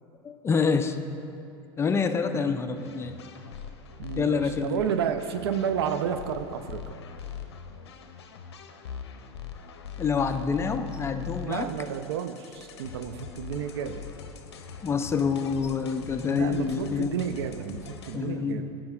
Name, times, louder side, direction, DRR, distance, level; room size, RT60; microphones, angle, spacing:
voice 1, 0.2-1.0 1.8-3.2 4.1-4.8 10.0-11.7 14.8-17.1 18.1-18.6, left 5 dB, 20° left, 8 dB, 0.4 m, -27 dB
sound 1, 2.7-18.2, left 7 dB, 75° left, 0.6 m, -42 dB
voice 2, 4.0-7.0 11.4-14.1 16.3-18.7, right 8 dB, 70° right, 9 dB, 0.4 m, -31 dB
14.5 x 5.1 x 2.3 m, 2.7 s
hypercardioid pair, 85°, 14 cm